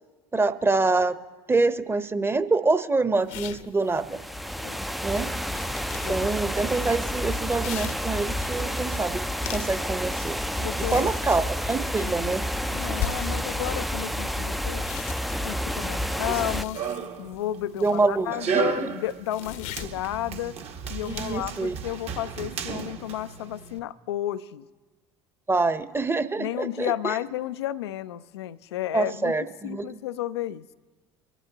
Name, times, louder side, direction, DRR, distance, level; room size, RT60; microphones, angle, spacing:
voice 1, 0.3-1.2 1.5-4.2 5.0-5.3 6.1-10.4 10.8-12.4 17.8-18.9 21.0-21.8 25.5-27.2 28.9-30.0, right 3 dB, 15° right, 11 dB, 1.0 m, -26 dB
sound 1, 3.1-22.9, left 10 dB, 65° left, 0.8 m, -43 dB
sound 2, 4.0-16.6, equal, ahead, 0.5 m, -30 dB
voice 2, 10.6-11.1 12.0-12.2 12.6-14.8 15.4-16.8 17.2-20.6 20.9-24.7 26.4-29.3 29.6-30.7, left 13 dB, 80° left, 15 dB, 0.5 m, -32 dB
Run, 16.1-23.8, right 6 dB, 50° right, 1.6 m, -34 dB
24.0 x 12.0 x 2.9 m, 1.3 s
hypercardioid pair, 70°, 13 cm